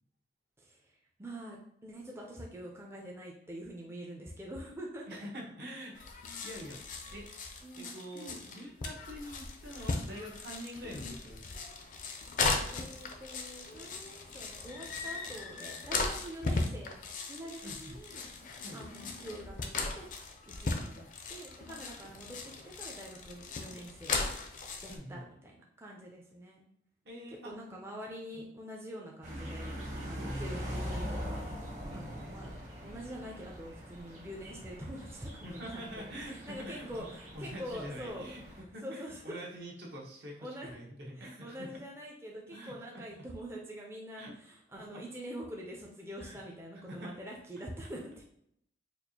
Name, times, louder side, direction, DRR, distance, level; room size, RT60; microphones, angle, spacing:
voice 1, 0.6-1.6 1.8-5.2 7.6-8.4 12.7-17.0 17.3-18.3 18.7-20.1 20.6-24.4 24.8-26.7 27.4-29.7 30.1-31.4 31.9-32.5 32.8-38.3 38.8-39.4 40.4-40.7 41.1-48.2, equal, 15° right, -2 dB, 0.4 m, -45 dB
voice 2, 5.1-6.8 7.1-7.3 7.8-11.5 17.6-18.0 18.6-18.8 20.6-20.8 24.9-25.2 27.0-27.5 28.3-28.4 30.2-30.3 31.9-32.2 35.4-41.7 42.5-43.0 44.2-44.3 44.7-45.0 46.2-46.4 46.9-47.1, equal, 70° right, -1 dB, 0.9 m, -45 dB
sound 1, 6.0-25.0, left 3 dB, 50° left, 0.4 m, -38 dB
sound 2, 29.2-38.6, equal, 40° right, 0.9 m, -42 dB
4.3 x 2.4 x 2.7 m, 0.72 s
head